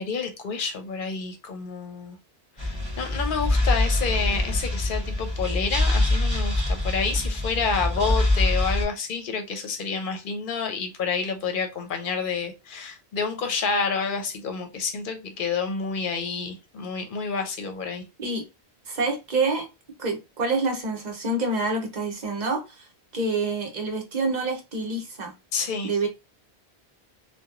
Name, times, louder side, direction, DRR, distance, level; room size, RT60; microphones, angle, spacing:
voice 1, 0.0-2.2 2.6-18.0 25.5-25.9, left 5 dB, 60° left, 0.7 m, -29 dB
sound 1, 2.6-8.8, left 2 dB, 25° right, 1.1 m, -24 dB
voice 2, 18.9-19.7 20.0-22.9 23.1-25.3 25.8-26.1, right 3 dB, 45° right, 0.8 m, -27 dB
2.9 x 2.2 x 2.4 m
omnidirectional pair, 1.1 m